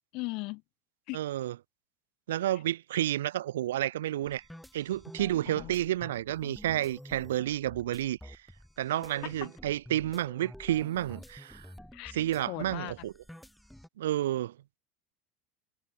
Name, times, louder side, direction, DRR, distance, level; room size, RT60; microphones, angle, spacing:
voice 1, 0.1-0.6 1.1-1.2 5.5-5.7 9.1-9.3 11.9-12.2 12.5-12.9, left 25 dB, 55° left, 1.1 m, -38 dB
voice 2, 1.1-1.5 2.3-4.4 4.7-8.4 8.8-11.7 12.1-13.1 14.0-14.5, right 13 dB, 70° right, 0.3 m, -30 dB
sound 1, 4.2-13.9, equal, ahead, 0.5 m, -50 dB
figure-of-eight pair, 75°, 0 cm